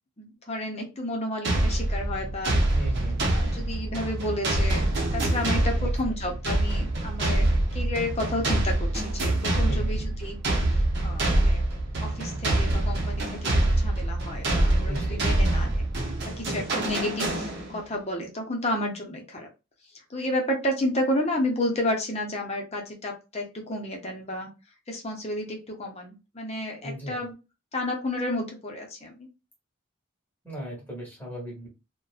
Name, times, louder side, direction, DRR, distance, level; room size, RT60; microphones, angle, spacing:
voice 1, 0.2-2.6 3.3-10.4 11.0-11.6 12.0-16.1 16.4-19.5 20.1-24.5 24.9-27.3 27.7-29.3, left 1 dB, 30° left, 1 dB, 0.8 m, -31 dB
sound 1, 1.4-17.9, right 1 dB, 55° right, 0.7 m, -25 dB
voice 2, 2.7-3.3 5.8-5.9 9.7-10.1 14.8-15.2 16.5-16.8 26.8-27.2 30.4-31.7, equal, 10° left, -4 dB, 1.1 m, -37 dB
2.6 x 2.2 x 2.4 m, 0.28 s
head